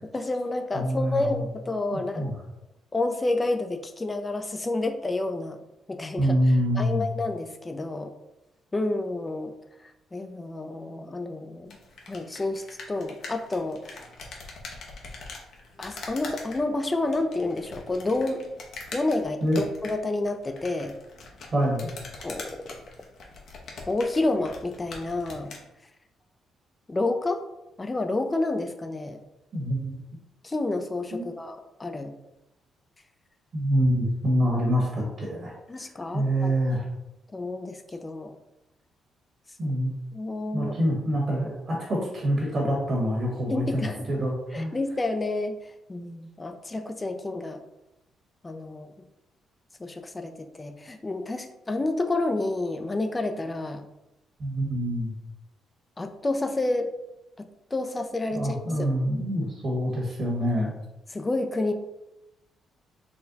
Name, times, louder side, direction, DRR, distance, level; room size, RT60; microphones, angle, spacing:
voice 1, 0.1-2.3 2.9-5.6 5.9-8.1 8.7-9.5 9.8-11.8 12.1-14.0 15.8-18.4 18.9-20.9 22.2-22.6 23.9-25.5 26.9-27.4 27.8-29.2 30.4-32.1 35.7-36.5 37.3-38.4 40.1-40.8 43.5-44.1 44.5-47.6 48.4-48.9 49.8-53.8 56.0-56.9 57.4-57.5 57.7-58.9 61.1-61.7, left 2 dB, 20° left, 7 dB, 0.5 m, -29 dB
voice 2, 0.7-1.4 1.9-2.3 6.2-7.0 19.4-19.6 21.5-21.9 29.5-29.9 31.1-31.2 33.5-35.5 35.8-35.9 36.1-36.8 39.6-39.9 40.5-44.7 54.4-55.1 58.3-60.7, equal, 50° right, -3 dB, 1.4 m, -26 dB
sound 1, 11.6-25.7, left 3 dB, 65° left, 0.9 m, -43 dB
4.2 x 2.2 x 3.9 m, 0.91 s
cardioid pair, 90°, 0 cm